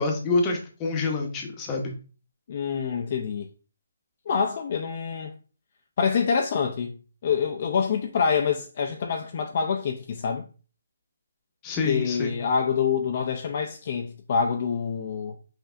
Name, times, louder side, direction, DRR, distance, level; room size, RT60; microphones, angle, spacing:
voice 1, 0.0-1.9 11.6-12.4, left 3 dB, 20° left, 0.8 m, -27 dB
voice 2, 2.5-3.5 4.3-5.3 6.0-6.9 7.2-10.4 11.8-15.4, left 6 dB, 45° left, 0.5 m, -26 dB
5.7 x 2.7 x 2.5 m
hypercardioid pair, 160°, 0 cm